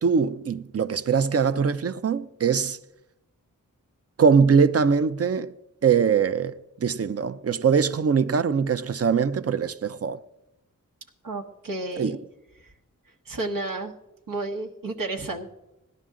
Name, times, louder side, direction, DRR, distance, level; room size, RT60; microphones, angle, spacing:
voice 1, 0.0-2.8 4.2-5.5 5.8-6.5 6.8-10.2 12.0-12.2, right 6 dB, 45° right, 0.5 m, -22 dB
voice 2, 11.2-12.2 12.6-12.7 13.2-13.9 14.3-15.5, right 2 dB, 85° right, 1.3 m, -32 dB
17.0 x 11.5 x 3.8 m
wide cardioid pair, 105°, 32 cm